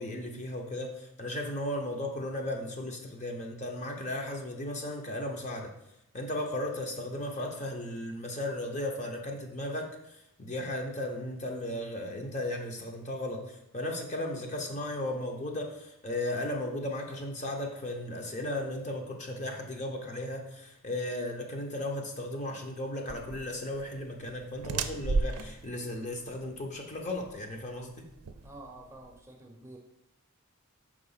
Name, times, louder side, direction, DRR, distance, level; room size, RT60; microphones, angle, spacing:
voice 1, 0.0-5.7 6.1-28.1, left 1 dB, 35° left, 2 dB, 0.7 m, -35 dB
sound 1, 23.1-29.2, right 4 dB, 85° right, 0.4 m, -36 dB
voice 2, 28.4-29.8, right 2 dB, 10° right, 1 dB, 0.6 m, -48 dB
4.9 x 3.5 x 5.6 m, 0.81 s
head